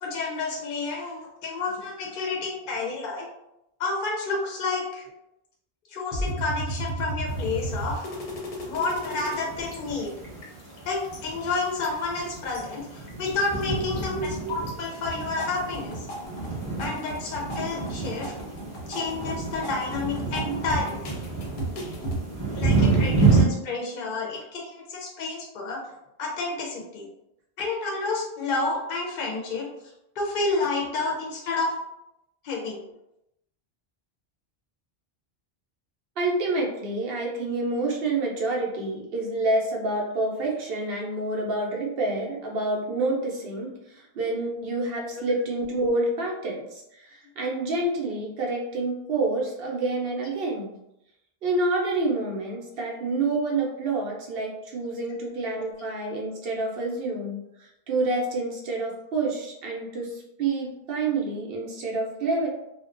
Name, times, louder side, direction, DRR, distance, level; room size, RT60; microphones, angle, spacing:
voice 1, 0.0-3.3 3.8-5.0 5.9-8.0 8.7-10.1 10.9-16.1 16.8-18.3 18.9-21.1 22.5-25.8 26.2-27.1 27.6-29.7 30.2-31.7 32.4-32.8, left 3 dB, 60° left, -1 dB, 0.6 m, -30 dB
sound 1, 6.1-9.4 9.7-9.8 10.1-10.8 11.1-12.6 13.1-13.6 14.0-14.7 15.0-22.2, right 1 dB, 90° left, 0.9 m, -34 dB
sound 2, 7.3-23.4, right 4 dB, 5° right, 0.9 m, -29 dB
voice 2, 14.1-14.5 20.4-20.6 36.2-50.7 51.4-62.5, right 2 dB, 70° right, -1 dB, 0.8 m, -28 dB
2.4 x 2.1 x 2.4 m, 0.84 s
omnidirectional pair, 1.0 m